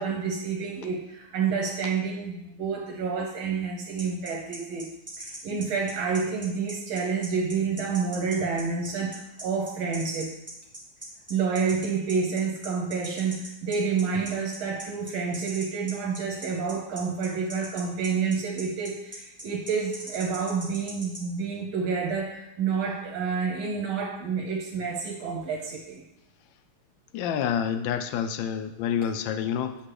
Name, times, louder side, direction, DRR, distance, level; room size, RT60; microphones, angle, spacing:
voice 1, 0.0-4.9 5.2-10.4 11.3-26.0, right 5 dB, 80° right, -1 dB, 1.6 m, -29 dB
sound 1, 4.0-21.2, right 1 dB, 10° right, 1.0 m, -40 dB
voice 2, 27.1-29.8, left 8 dB, 75° left, 10 dB, 1.2 m, -28 dB
8.0 x 6.0 x 3.2 m, 0.87 s
omnidirectional pair, 2.3 m